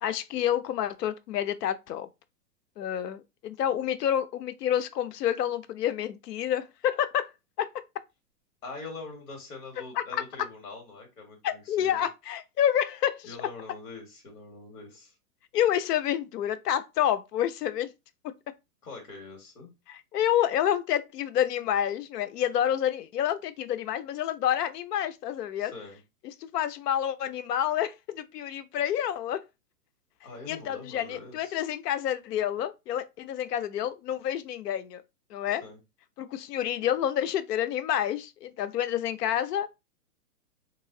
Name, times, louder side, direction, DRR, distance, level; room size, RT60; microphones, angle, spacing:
voice 1, 0.0-2.1 2.8-7.3 7.6-7.7 10.0-10.2 11.4-13.3 15.5-17.9 19.9-25.7 26.4-29.4 30.5-35.0 35.3-35.6 36.2-39.7, left 10 dB, 85° left, 0.6 m, -28 dB
voice 2, 8.6-12.1 13.2-15.1 18.8-19.7 25.6-26.0 30.2-31.6 35.5-35.8, left 3 dB, 65° left, 1.8 m, -44 dB
3.0 x 2.6 x 2.6 m
hypercardioid pair, 155°, 46 cm